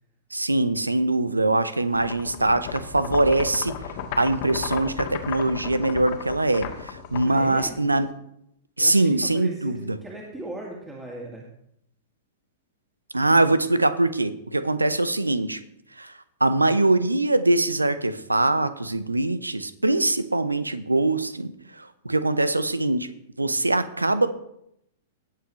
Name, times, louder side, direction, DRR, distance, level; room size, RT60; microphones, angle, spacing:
voice 1, 0.3-3.8 4.2-8.1 8.8-10.0 13.1-15.6 16.0-16.1 16.4-23.1 23.4-24.3, right 2 dB, 90° right, 14 dB, 0.7 m, -23 dB
sound 1, 1.9-8.1, left 8 dB, 50° left, 1.6 m, -35 dB
voice 2, 7.2-7.8 8.8-11.5, right 2 dB, 10° right, -3 dB, 2.3 m, -38 dB
19.0 x 7.6 x 3.1 m, 0.76 s
figure-of-eight pair, 100°, 0 cm